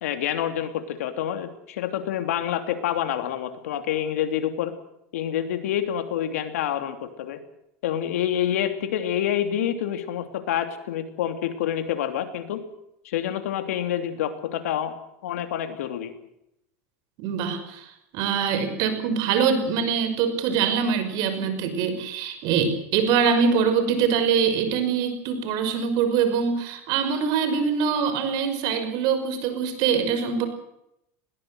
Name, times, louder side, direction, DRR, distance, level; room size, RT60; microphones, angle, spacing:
voice 1, 0.0-4.7 5.1-7.4 7.8-12.6 13.0-14.9 15.2-16.1, left 10 dB, 85° left, 8 dB, 3.0 m, -27 dB
voice 2, 17.2-30.5, right 6 dB, 60° right, 10 dB, 5.8 m, -24 dB
21.0 x 18.0 x 7.9 m, 0.80 s
supercardioid pair, 105°, 8 cm